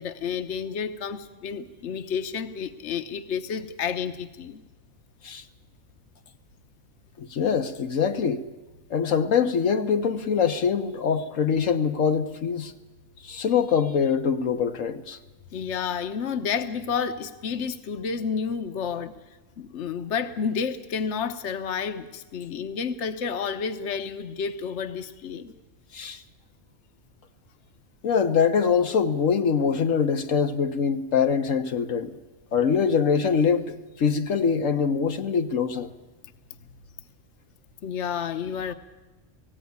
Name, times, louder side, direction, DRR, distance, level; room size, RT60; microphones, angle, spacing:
voice 1, 0.0-4.6 15.5-19.1 19.6-25.5 37.8-38.7, left 6 dB, 65° left, 1.2 m, -30 dB
voice 2, 7.2-8.4 8.9-12.7 13.2-15.2 25.9-26.2 28.0-32.2 32.5-35.9, left 6 dB, 85° left, 1.4 m, -24 dB
18.5 x 16.0 x 9.5 m
omnidirectional pair, 1.3 m